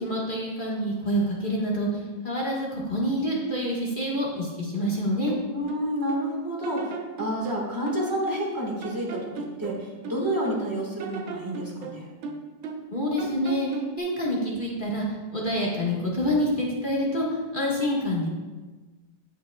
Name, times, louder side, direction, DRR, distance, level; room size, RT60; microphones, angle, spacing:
voice 1, 0.0-1.9 2.2-5.4 12.9-13.7 14.0-15.0 15.3-17.3 17.5-18.3, equal, 30° left, -4 dB, 1.4 m, -27 dB
sound 1, 5.3-6.3 6.6-8.5 8.8-10.6 11.0-12.9 13.2-14.0, right 4 dB, 80° right, 1.6 m, -37 dB
voice 2, 5.5-6.9 7.2-12.1, right 1 dB, 10° right, -2 dB, 1.3 m, -29 dB
17.5 x 5.9 x 2.3 m, 1.3 s
omnidirectional pair, 2.2 m